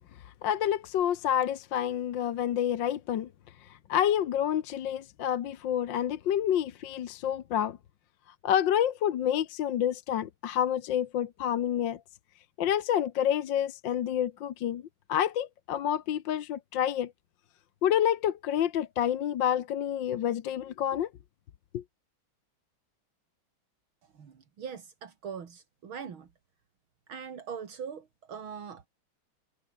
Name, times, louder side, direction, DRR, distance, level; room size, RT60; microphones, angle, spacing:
voice 1, 0.4-3.3 3.9-7.8 8.4-12.0 12.6-14.8 15.1-17.1 17.8-21.1 21.7-21.8, left 10 dB, 65° left, 1.7 m, -28 dB
voice 2, 24.1-26.3 27.1-28.9, right 7 dB, 80° right, 3.0 m, -41 dB
omnidirectional pair, 2.2 m